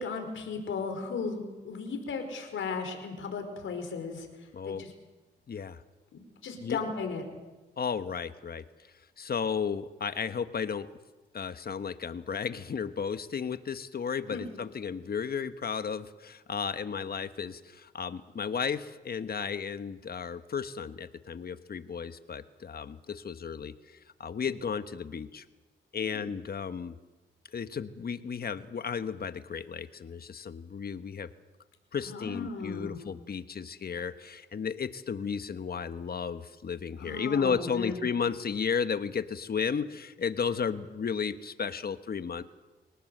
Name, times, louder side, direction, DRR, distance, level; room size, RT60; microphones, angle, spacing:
voice 1, 0.0-4.3 4.6-4.9 6.1-7.2 14.3-14.5 26.0-26.3 32.0-33.0 37.0-38.0, left 4 dB, 80° left, 5 dB, 4.9 m, -36 dB
voice 2, 5.5-5.8 6.6-6.8 7.8-8.6 9.2-10.9 11.3-23.7 24.2-25.4 25.9-26.9 27.5-31.3 31.9-42.4, left 6 dB, 50° left, 11 dB, 1.3 m, -33 dB
25.0 x 19.0 x 7.9 m, 1.2 s
cardioid pair, 85°, 20 cm